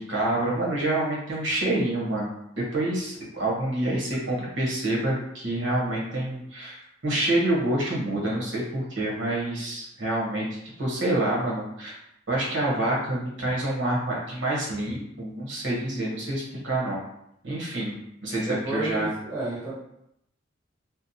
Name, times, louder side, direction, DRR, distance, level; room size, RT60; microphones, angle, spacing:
voice 1, 0.1-10.5 10.8-12.0 12.3-17.0 17.4-17.9 18.2-19.1, right 1 dB, 80° right, -4 dB, 0.9 m, -27 dB
voice 2, 18.4-19.7, right 2 dB, 15° right, -6 dB, 0.7 m, -31 dB
2.8 x 2.1 x 2.6 m, 0.77 s
head